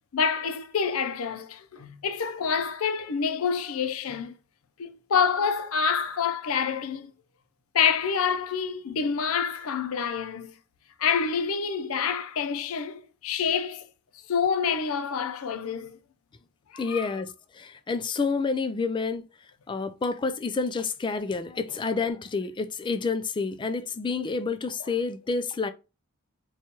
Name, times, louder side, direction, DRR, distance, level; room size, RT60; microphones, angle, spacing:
voice 1, 0.1-4.3 4.8-7.1 7.7-10.5 11.0-13.9 14.3-16.0 16.7-17.1, left 6 dB, 85° left, 0.5 m, -27 dB
voice 2, 16.8-19.3 19.7-25.7, left 4 dB, 25° left, 0.3 m, -29 dB
4.3 x 2.3 x 2.8 m
head